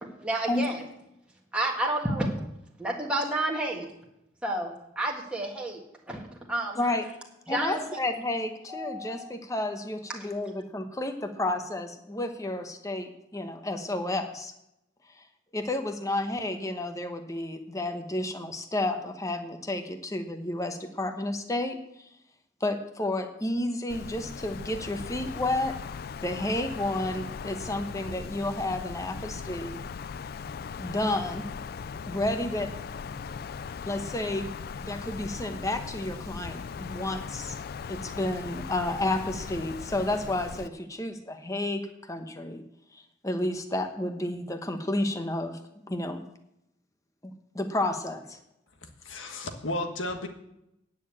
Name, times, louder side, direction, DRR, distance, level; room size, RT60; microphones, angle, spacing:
voice 1, 0.0-0.8 1.5-2.3 2.8-3.9 4.4-5.8 6.1-6.8 7.5-8.0 8.7-9.3, right 1 dB, 5° right, -2 dB, 1.6 m, -30 dB
voice 2, 7.5-14.5 15.5-21.8 22.6-25.7 26.2-29.8 30.8-31.5 32.1-32.7 33.9-34.5 34.8-37.6 37.9-42.6 42.9-45.6 45.9-46.2 47.2-48.4, left 1 dB, 15° left, 7 dB, 1.0 m, -31 dB
Wind, 23.9-40.7, left 6 dB, 50° left, 0.4 m, -39 dB
voice 3, 48.8-50.3, left 2 dB, 90° left, 5 dB, 1.5 m, -34 dB
9.6 x 6.6 x 8.5 m, 0.82 s
head